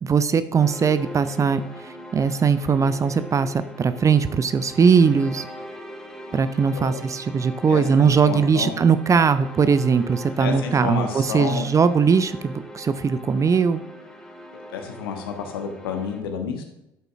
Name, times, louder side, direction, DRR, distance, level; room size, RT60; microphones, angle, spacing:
voice 1, 0.0-5.5 6.3-13.8, right 6 dB, 25° right, 13 dB, 0.5 m, -20 dB
sound 1, 0.6-16.2, equal, 5° left, 2.0 m, -41 dB
voice 2, 7.6-8.7 10.4-11.7 14.5-16.8, left 6 dB, 70° left, 4 dB, 1.4 m, -30 dB
11.0 x 7.9 x 2.5 m, 0.85 s
figure-of-eight pair, 60°, 13 cm